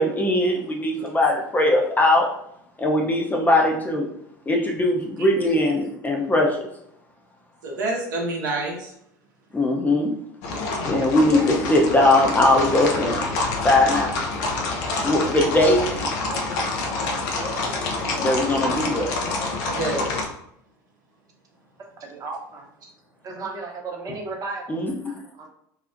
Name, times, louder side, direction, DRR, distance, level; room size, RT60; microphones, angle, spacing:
voice 1, 0.0-2.4 2.8-4.1 4.5-6.6 9.5-10.1 10.9-13.2 13.6-14.2 15.0-16.0 18.2-19.2 24.7-25.1, left 1 dB, 15° left, 0 dB, 0.5 m, -20 dB
voice 2, 7.6-8.9 19.7-20.3, right 2 dB, 80° right, -1 dB, 0.7 m, -28 dB
sound 1, 10.4-20.3, left 3 dB, 65° left, 0.5 m, -27 dB
voice 3, 22.0-22.7 23.2-25.5, right 3 dB, 35° right, 0 dB, 0.7 m, -35 dB
2.8 x 2.0 x 2.4 m, 0.74 s
hypercardioid pair, 75°, 10 cm